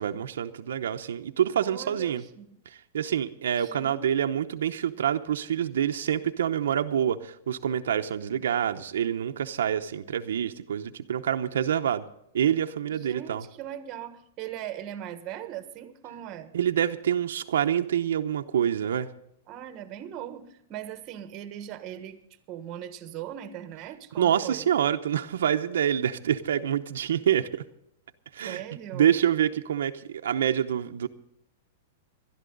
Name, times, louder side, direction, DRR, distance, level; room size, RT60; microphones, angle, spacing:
voice 1, 0.0-2.2 2.7-12.0 12.3-13.4 16.5-19.1 24.2-27.6 28.3-28.6 28.9-31.1, right 9 dB, 85° right, 6 dB, 0.8 m, -26 dB
voice 2, 1.6-2.6 3.6-4.2 12.9-16.5 19.5-22.2 22.5-24.7 28.4-29.2, right 11 dB, 30° right, 10 dB, 1.4 m, -39 dB
19.5 x 12.5 x 3.9 m, 0.78 s
supercardioid pair, 160°, 0 cm